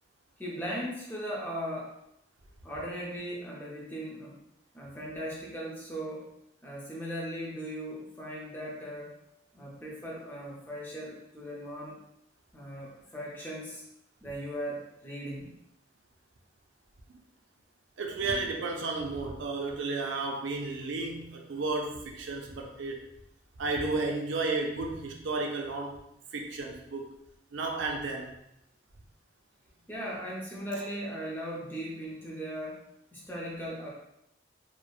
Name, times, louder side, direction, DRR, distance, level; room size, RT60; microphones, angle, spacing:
voice 1, 0.4-1.9 2.6-4.4 4.7-6.3 6.6-9.1 9.5-12.0 12.5-13.8 14.2-15.5 29.9-32.8 33.1-33.9, equal, 10° left, -5 dB, 0.5 m, -38 dB
voice 2, 18.0-23.0 23.6-26.0 26.3-27.1 27.5-28.3, right 3 dB, 90° right, 2 dB, 0.4 m, -33 dB
3.1 x 2.1 x 2.3 m, 0.80 s
head